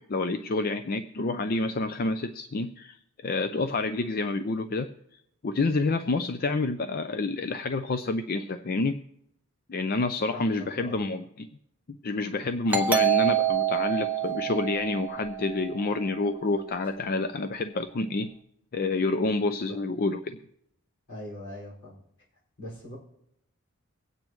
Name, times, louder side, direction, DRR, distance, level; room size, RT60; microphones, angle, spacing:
voice 1, 0.0-3.0 3.2-4.9 5.4-9.0 9.7-11.5 12.0-18.3 18.7-20.4, left 3 dB, 40° left, 9 dB, 0.5 m, -28 dB
voice 2, 10.3-11.0 21.1-22.0 22.6-23.0, left 1 dB, 75° left, -4 dB, 5.4 m, -41 dB
Doorbell, 12.7-16.1, right 9 dB, 10° right, 0.7 m, -27 dB
24.5 x 8.9 x 3.1 m, 0.75 s
head